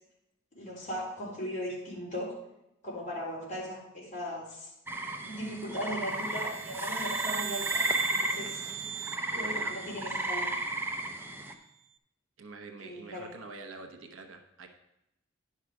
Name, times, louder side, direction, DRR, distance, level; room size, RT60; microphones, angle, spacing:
voice 1, 0.6-2.3 2.8-4.7 5.2-7.8 8.1-8.6 9.3-10.5 12.8-13.3, equal, 40° left, -6 dB, 3.7 m, -38 dB
sound 1, 4.9-11.5, right 1 dB, 10° right, 0.7 m, -34 dB
sound 2, 6.2-10.7, right 9 dB, 65° right, 0.5 m, -39 dB
voice 2, 9.3-9.8 12.4-14.7, right 3 dB, 85° right, 4 dB, 0.9 m, -46 dB
10.5 x 5.7 x 4.8 m, 0.85 s
head